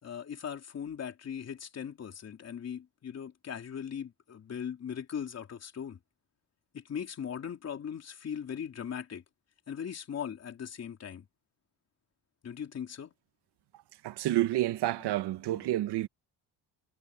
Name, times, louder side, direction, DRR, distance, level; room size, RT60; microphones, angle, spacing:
voice 1, 0.0-6.0 6.7-9.2 9.7-11.3 12.4-13.1 15.5-15.7, left 8 dB, 40° left, 3.5 m, -39 dB
voice 2, 14.0-16.1, right 14 dB, 80° right, 1.2 m, -29 dB
cardioid pair, 170°, 40 cm